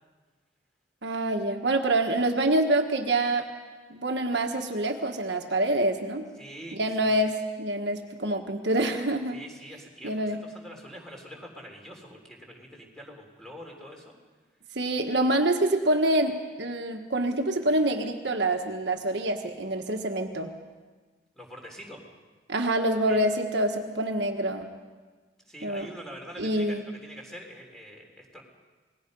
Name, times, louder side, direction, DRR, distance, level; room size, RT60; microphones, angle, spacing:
voice 1, 1.0-3.5 3.9-6.3 6.7-9.4 10.0-10.5 14.7-20.5 22.5-24.7 25.6-25.9 26.4-26.8, right 1 dB, 65° right, 4 dB, 1.4 m, -26 dB
voice 2, 6.4-7.2 9.3-14.1 21.4-22.0 23.1-23.2 25.5-28.4, equal, 5° left, 0 dB, 3.7 m, -45 dB
27.5 x 20.0 x 5.4 m, 1.4 s
head